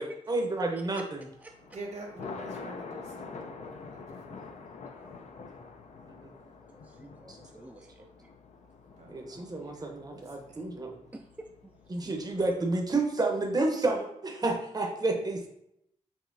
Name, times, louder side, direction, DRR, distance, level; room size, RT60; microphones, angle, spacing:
voice 1, 0.0-1.2 6.1-6.2 7.3-7.7 9.1-11.0 11.9-15.5, right 2 dB, 30° right, 2 dB, 0.8 m, -30 dB
Thunder, 1.3-12.7, left 4 dB, 60° left, 0.5 m, -46 dB
voice 2, 1.6-4.6 8.9-10.8, right 2 dB, 60° right, 1 dB, 1.2 m, -47 dB
voice 3, 4.9-5.2 6.7-8.3 11.1-11.7 12.0-12.1, right 2 dB, 10° right, 2 dB, 0.4 m, -50 dB
5.4 x 2.8 x 2.6 m, 0.76 s
cardioid pair, 60°, 13 cm